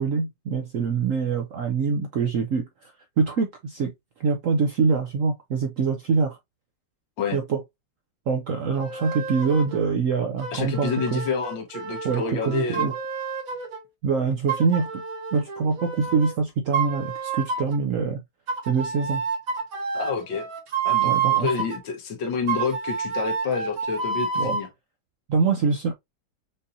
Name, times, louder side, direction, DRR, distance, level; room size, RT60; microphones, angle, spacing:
voice 1, 0.0-2.9 3.2-3.9 4.2-6.4 7.3-7.6 8.3-11.2 12.0-12.9 14.0-15.0 15.3-18.2 18.7-19.2 21.0-21.5 24.4-24.6 25.3-25.9, right 5 dB, 70° right, 0.7 m, -24 dB
sound 1, 8.8-9.8 10.4-13.8 14.5-16.4 16.7-17.8 18.5-21.8 22.5-24.7, right 6 dB, 55° right, 1.5 m, -29 dB
voice 2, 10.5-12.9 19.9-20.5 20.8-24.7, left 5 dB, 85° left, 1.9 m, -28 dB
5.4 x 2.7 x 2.5 m
omnidirectional pair, 2.0 m